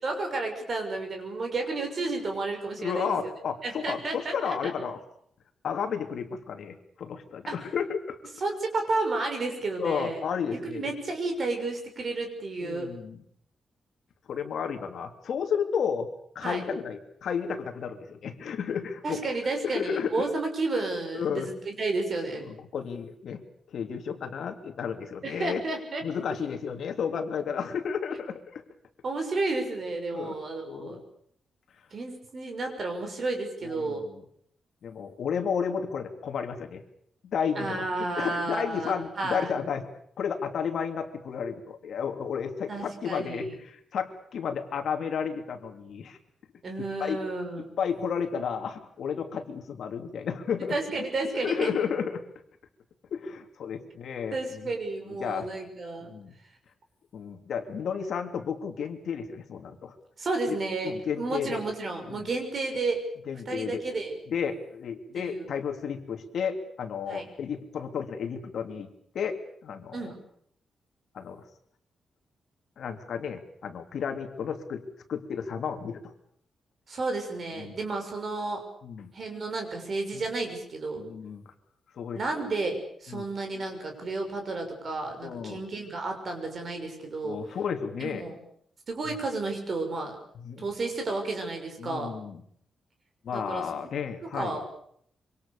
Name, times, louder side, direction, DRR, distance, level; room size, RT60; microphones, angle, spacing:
voice 1, 0.0-3.1 3.6-4.6 7.5-7.6 8.4-10.2 10.6-12.9 16.4-16.6 19.0-22.4 25.2-26.0 29.0-31.0 31.9-34.1 37.6-39.5 42.7-43.5 46.6-47.7 50.7-51.7 54.3-56.1 60.2-63.0 63.5-64.2 65.1-65.5 67.1-67.2 69.9-70.1 76.9-78.6 79.1-81.0 82.1-87.4 88.0-88.4 88.9-90.2 90.6-92.1 93.3-93.7 94.3-94.6, right 3 dB, 40° right, 4 dB, 6.2 m, -32 dB
voice 2, 2.8-5.0 5.6-8.2 9.8-10.9 12.6-13.2 14.3-16.1 16.3-19.2 19.6-20.3 21.1-21.5 22.4-23.4 23.7-25.6 26.0-28.6 30.1-30.4 30.6-31.0 33.6-34.1 34.8-36.8 37.2-37.9 38.2-39.9 40.2-46.2 47.0-47.2 47.5-50.8 51.3-52.2 53.1-54.7 55.2-55.5 56.0-56.3 57.1-59.9 60.5-60.6 60.8-61.6 62.1-62.3 63.3-63.8 64.3-70.1 71.1-71.4 72.8-74.8 75.1-76.1 77.6-77.8 78.8-79.1 80.1-80.2 80.9-81.5 82.0-82.2 83.1-83.2 85.2-85.6 87.2-88.2 90.3-90.7 91.8-92.4 93.2-94.6, left 7 dB, 60° left, 6 dB, 3.0 m, -32 dB
26.5 x 25.0 x 7.0 m, 0.68 s
wide cardioid pair, 175°, 0 cm